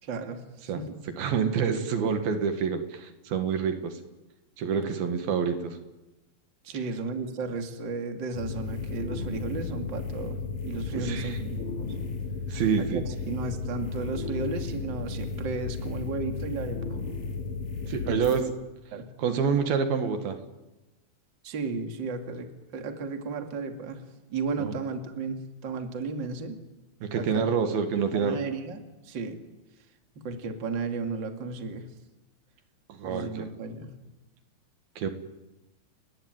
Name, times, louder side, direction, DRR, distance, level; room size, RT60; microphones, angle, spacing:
voice 1, 0.0-0.4 0.7-1.0 6.6-10.4 10.6-11.9 12.8-17.0 18.1-18.3 18.9-19.1 21.4-24.0 24.3-26.6 27.1-27.4 27.7-29.4 30.2-31.9 33.0-33.9, right 4 dB, 35° right, 5 dB, 2.6 m, -34 dB
voice 2, 1.2-4.0 4.6-5.8 10.9-11.4 12.5-13.0 17.9-18.4 19.2-20.4 24.6-24.8 27.0-28.4 32.9-33.5 35.0-35.1, right 6 dB, 70° right, 7 dB, 3.6 m, -27 dB
sound 1, 8.3-18.4, left 4 dB, 50° left, 5.2 m, -34 dB
30.0 x 20.0 x 9.3 m, 1.1 s
omnidirectional pair, 4.4 m